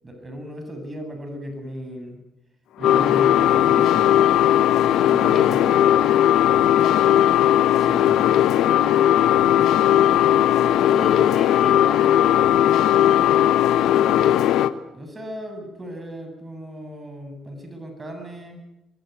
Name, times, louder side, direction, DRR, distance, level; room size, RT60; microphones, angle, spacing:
voice 1, 0.0-2.2 2.8-4.1 4.8-5.8 7.8-8.2 9.1-9.7 10.4-11.3 14.9-18.6, equal, 25° right, 5 dB, 7.9 m, -36 dB
sound 1, 2.8-14.7, left 11 dB, 85° left, 1.1 m, -17 dB
voice 2, 5.2-5.6 6.8-7.2 10.8-13.5 13.8-14.7, left 2 dB, 35° left, 6 dB, 6.5 m, -35 dB
24.5 x 21.5 x 9.5 m, 0.93 s
cardioid pair, 90°, 0 cm